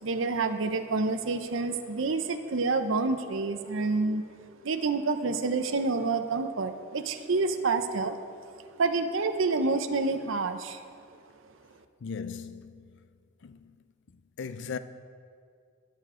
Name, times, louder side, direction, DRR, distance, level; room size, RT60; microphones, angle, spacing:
voice 1, 0.0-4.3 4.6-8.2 8.8-10.8, right 3 dB, 65° right, 0.7 m, -28 dB
voice 2, 12.0-13.1 13.4-13.7 14.4-14.8, left 5 dB, 60° left, 0.5 m, -38 dB
19.5 x 6.8 x 3.7 m
head